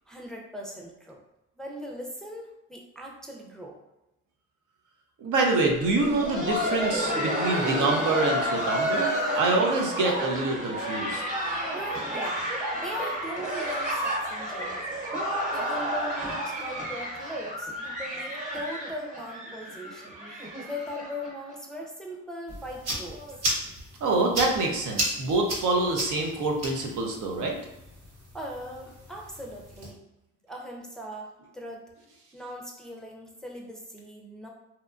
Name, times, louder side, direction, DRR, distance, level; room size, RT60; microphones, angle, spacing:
voice 1, 0.1-1.2 1.6-3.8 11.7-15.0 15.5-23.2 28.3-30.0 30.5-31.8 32.3-34.5, equal, ahead, -1 dB, 0.4 m, -40 dB
voice 2, 5.2-11.2 24.0-27.5, right 3 dB, 80° right, 1 dB, 0.6 m, -26 dB
Laughter, 5.8-21.5 21.8-21.9 22.5-22.6 23.1-23.3 24.4-24.5, equal, 25° right, 1.0 m, -31 dB
sound 1, 22.5-29.9, right 1 dB, 60° right, 1.0 m, -35 dB
2.8 x 2.1 x 2.4 m, 0.94 s
cardioid pair, 90°, 30 cm